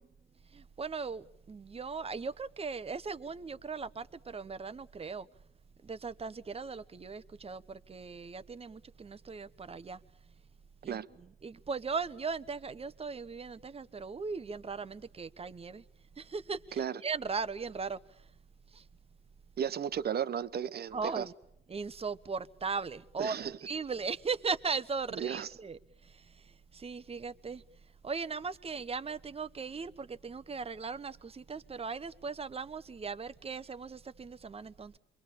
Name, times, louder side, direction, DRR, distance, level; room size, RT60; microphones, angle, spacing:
voice 1, 0.5-5.3 5.8-10.0 10.8-15.8 16.2-18.0 18.7-18.8 20.9-21.3 21.7-27.6 28.0-35.0, right 5 dB, 30° right, 1.0 m, -38 dB
voice 2, 19.6-21.3 23.2-23.5 25.2-25.5, right 8 dB, 50° right, 1.1 m, -34 dB
27.5 x 23.0 x 8.7 m
cardioid pair, 90°, 20 cm